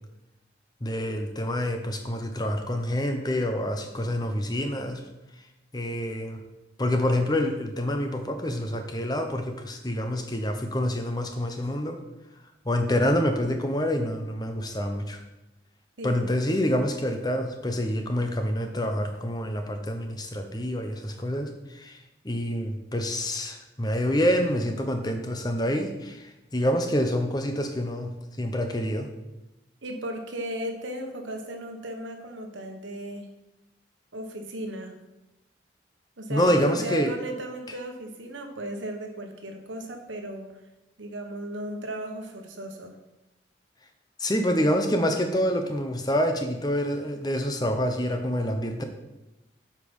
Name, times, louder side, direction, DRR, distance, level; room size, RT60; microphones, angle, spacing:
voice 1, 0.8-5.0 5.7-6.4 6.8-12.0 12.6-15.2 16.0-22.0 22.2-29.1 36.3-37.1 44.2-48.8, equal, 20° left, 5 dB, 0.7 m, -27 dB
voice 2, 29.8-33.3 34.1-35.0 36.2-40.5 41.0-43.0, right 1 dB, 85° right, 4 dB, 1.3 m, -36 dB
8.3 x 5.3 x 5.3 m, 0.98 s
head